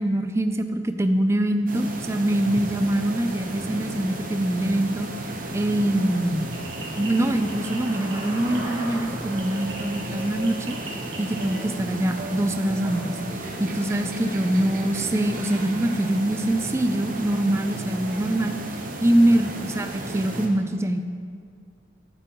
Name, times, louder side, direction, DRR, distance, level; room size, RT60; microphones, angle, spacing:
voice 1, 0.0-5.1 5.5-6.5 7.0-18.6 19.0-21.0, right 1 dB, 15° right, 7 dB, 0.4 m, -24 dB
sound 1, 1.7-20.5, right 1 dB, 45° right, 0.8 m, -34 dB
sound 2, 6.5-11.6, right 2 dB, 90° right, 1.7 m, -39 dB
11.0 x 6.9 x 3.1 m, 2.1 s
head